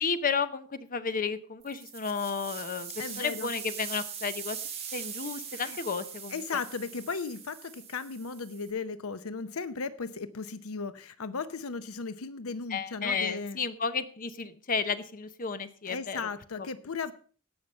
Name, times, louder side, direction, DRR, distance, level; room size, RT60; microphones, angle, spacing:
voice 1, 0.0-4.6 4.9-6.6 12.7-16.2 16.6-16.7, left 5 dB, 40° left, 12 dB, 0.9 m, -32 dB
sound 1, 1.6-8.7, right 7 dB, 30° right, 2.5 m, -42 dB
voice 2, 3.0-3.5 5.6-5.8 6.3-13.6 15.9-17.1, left 4 dB, 75° left, 13 dB, 0.7 m, -36 dB
17.5 x 5.9 x 5.3 m, 0.43 s
head